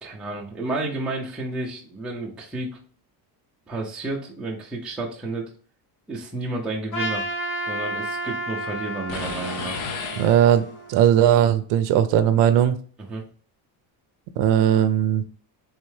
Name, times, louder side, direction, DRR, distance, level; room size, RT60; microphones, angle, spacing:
voice 1, 0.0-2.8 3.7-5.5 6.1-7.3 7.7-9.8 13.0-13.2, right 2 dB, ahead, -3 dB, 0.4 m, -31 dB
Trumpet, 6.9-11.2, right 1 dB, 30° left, 1.3 m, -31 dB
sound 1, 9.1-10.9, left 5 dB, 80° left, 0.8 m, -33 dB
voice 2, 10.2-12.8 14.4-15.2, right 10 dB, 65° right, 11 dB, 0.5 m, -18 dB
3.5 x 3.2 x 3.2 m, 0.43 s
cardioid pair, 170°, 45 cm